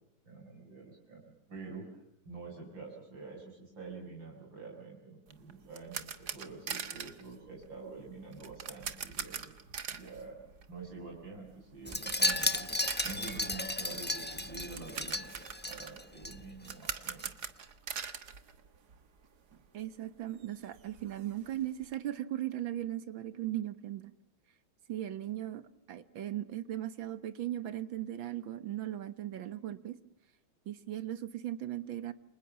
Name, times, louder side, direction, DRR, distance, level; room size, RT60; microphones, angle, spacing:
voice 1, 0.2-9.5 9.9-10.4 10.7-12.7 13.0-17.3, right 4 dB, 75° right, -1 dB, 7.0 m, -47 dB
sound 1, 5.3-19.3 19.5-19.7 20.1-20.2 20.4-22.0, right 7 dB, 55° right, 2.0 m, -43 dB
Wind chime, 11.9-16.3 16.6-16.9 17.2-17.3, left 2 dB, 15° left, 0.4 m, -34 dB
voice 2, 19.7-24.1 24.9-30.0 30.7-32.1, right 12 dB, 90° right, 13 dB, 2.1 m, -38 dB
29.5 x 27.0 x 6.9 m, 0.81 s
omnidirectional pair, 2.1 m